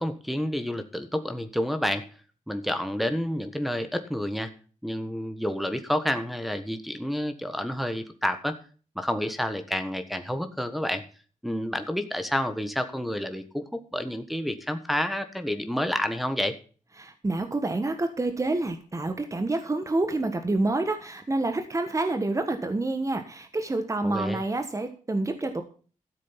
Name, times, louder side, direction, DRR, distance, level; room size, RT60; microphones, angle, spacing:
voice 1, 0.0-2.1 2.5-4.5 4.8-8.6 8.9-11.0 11.4-13.6 13.9-16.6 24.0-24.4, equal, ahead, 7 dB, 1.3 m, -29 dB
voice 2, 17.0-25.6, right 2 dB, 25° right, 7 dB, 1.4 m, -28 dB
13.5 x 7.6 x 5.6 m, 0.39 s
wide cardioid pair, 110°, 14 cm